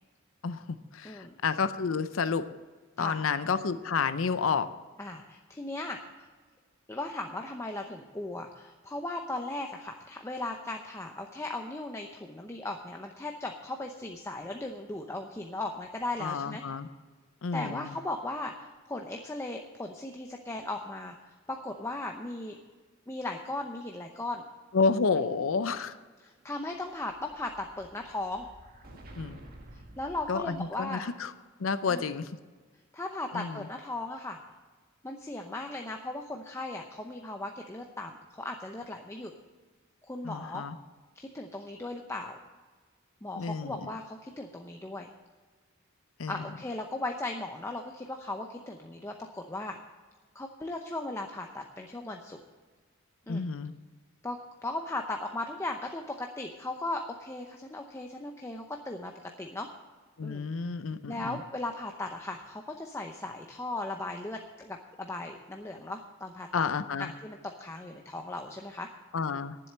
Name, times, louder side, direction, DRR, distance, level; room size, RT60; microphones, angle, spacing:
voice 1, 0.4-2.4 3.0-4.7 16.2-16.9 17.4-17.9 24.7-26.0 29.2-29.4 30.3-31.3 31.6-32.3 33.3-33.7 40.2-40.8 43.4-43.8 46.2-46.4 53.3-53.7 60.2-61.4 66.5-67.1 69.1-69.6, left 5 dB, 80° left, 12 dB, 0.6 m, -30 dB
voice 2, 1.0-1.4 3.0-3.2 5.0-6.3 6.9-16.6 17.5-21.1 21.5-22.6 23.1-24.4 26.2-28.5 29.7-31.0 31.9-32.1 32.9-34.4 35.0-39.3 40.0-40.6 41.2-42.4 43.2-45.1 46.3-49.8 50.3-52.4 53.3-53.5 54.2-59.1 59.4-59.7 60.2-60.5 61.1-66.6 67.0-68.9, left 2 dB, 15° left, 3 dB, 0.7 m, -37 dB
Explosion, 26.4-31.1, right 1 dB, 45° right, 1.6 m, -52 dB
10.5 x 7.7 x 8.4 m, 1.4 s
head